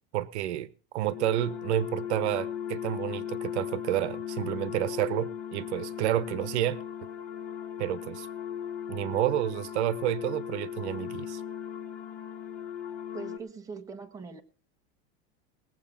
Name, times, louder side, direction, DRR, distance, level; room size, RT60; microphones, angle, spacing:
voice 1, 0.1-6.8 7.8-8.3 8.9-11.4, right 13 dB, 80° right, 1.0 m, -30 dB
sound 1, 1.1-13.4, left 9 dB, 40° left, 2.1 m, -37 dB
voice 2, 13.1-14.4, right 4 dB, 10° right, 1.2 m, -41 dB
20.0 x 7.6 x 5.7 m
supercardioid pair, 160°, 33 cm